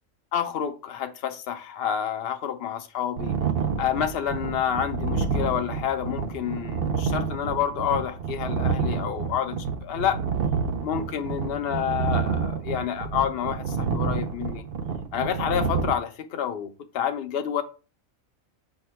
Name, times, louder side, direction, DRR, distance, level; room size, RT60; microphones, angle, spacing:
voice 1, 0.3-3.4 3.8-10.2 10.8-14.7 15.1-17.6, left 9 dB, 60° left, 0.7 m, -28 dB
sound 1, 3.2-15.9, right 5 dB, 60° right, 0.6 m, -28 dB
5.5 x 2.2 x 4.3 m
omnidirectional pair, 1.4 m